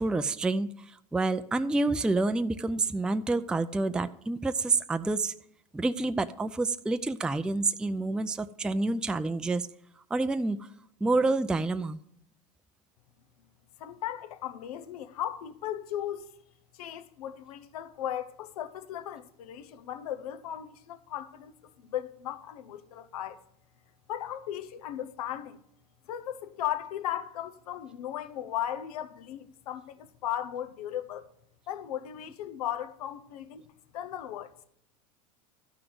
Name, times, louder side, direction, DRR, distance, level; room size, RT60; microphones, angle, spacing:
voice 1, 0.0-5.3 5.7-9.7 10.1-10.6 11.0-12.0, right 3 dB, 5° right, 0.4 m, -28 dB
voice 2, 13.8-16.3 16.7-23.4 24.1-25.6 26.1-31.3 31.7-33.7 33.9-34.5, left 11 dB, 85° left, 0.9 m, -36 dB
12.0 x 6.0 x 7.7 m
supercardioid pair, 110°, 19 cm